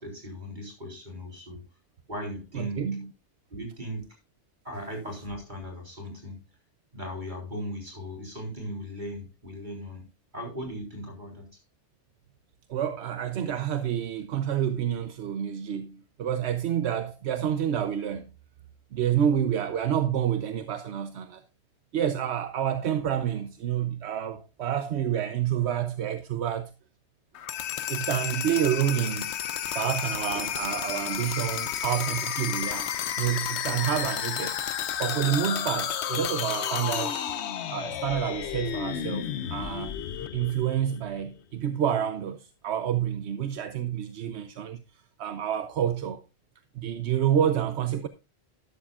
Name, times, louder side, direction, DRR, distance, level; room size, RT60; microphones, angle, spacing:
voice 1, 0.0-1.6 2.1-2.8 3.5-4.1 4.6-6.4 6.9-10.1 10.3-11.5, equal, 45° right, 4.0 m, -37 dB
voice 2, 2.5-3.1 12.7-18.3 18.9-21.4 21.9-26.7 27.9-29.3 29.7-32.9 33.2-34.6 35.0-37.2 37.7-40.0 40.3-44.8 45.2-46.2 46.7-48.1, right 10 dB, 80° right, 1.0 m, -28 dB
sound 1, 27.3-41.2, left 9 dB, 85° left, 1.0 m, -32 dB
12.5 x 11.5 x 2.4 m
omnidirectional pair, 1.1 m